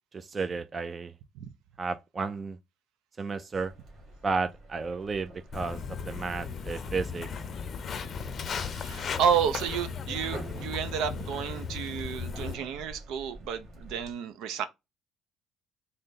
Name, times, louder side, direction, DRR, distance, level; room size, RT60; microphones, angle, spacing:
voice 1, 0.1-1.1 1.8-2.6 3.2-3.7 4.2-5.8 6.0-7.3, right 4 dB, 35° right, 0.4 m, -32 dB
sound 1, 3.5-14.1, right 1 dB, 55° right, 1.9 m, -48 dB
Walk footsteps, 5.5-12.5, left 6 dB, 45° left, 0.5 m, -36 dB
voice 2, 8.6-14.6, right 8 dB, 80° right, 0.6 m, -31 dB
3.9 x 2.1 x 3.7 m
cardioid pair, 95°, 0 cm